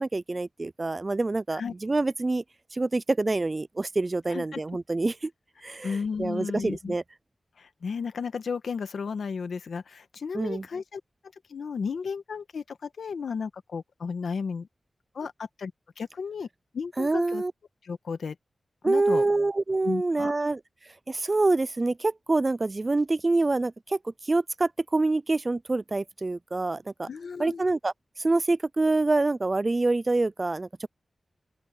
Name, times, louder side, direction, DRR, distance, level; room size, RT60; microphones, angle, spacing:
voice 1, 0.0-2.4 2.7-5.3 5.6-7.0 10.3-10.6 17.0-17.5 18.8-20.6 21.1-27.1 27.4-27.9 28.2-30.9, right 2 dB, 30° right, 0.3 m, -26 dB
voice 2, 4.3-4.6 5.8-7.0 7.6-11.0 11.5-14.7 15.1-15.7 16.0-16.5 16.7-17.4 17.8-18.3 18.8-19.2 19.8-20.3 27.1-27.6, left 5 dB, 90° left, 1.3 m, -33 dB
open air
wide cardioid pair, 145°, 0 cm